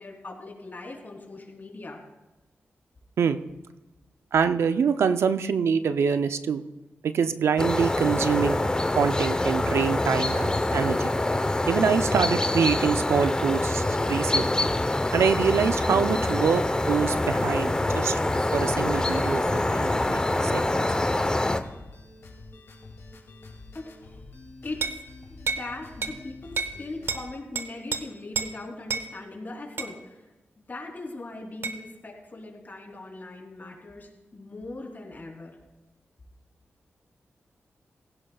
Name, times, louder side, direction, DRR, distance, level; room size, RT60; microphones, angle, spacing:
voice 1, 0.0-2.0 23.7-23.9 24.6-25.0 25.3-30.2 30.6-35.6, left 2 dB, 45° left, 0 dB, 3.3 m, -40 dB
voice 2, 4.3-6.6 7.0-8.6 9.0-11.1 11.7-14.7 15.1-18.2 18.5-19.4 19.7-20.9, right 6 dB, 90° right, 10 dB, 0.6 m, -25 dB
sound 1, 7.6-21.6, left 2 dB, 20° left, 0.8 m, -25 dB
sound 2, 18.6-27.4, left 3 dB, 75° left, 2.5 m, -47 dB
sound 3, 24.8-25.0 25.5-25.7 26.0-26.2 26.6-26.8 27.1-27.2 27.6-28.0 28.4-28.5 28.9-29.1 29.8-29.9 31.6-31.8, right 5 dB, 65° right, 1.1 m, -29 dB
16.5 x 16.0 x 2.4 m, 1.1 s
cardioid pair, 60°, 4 cm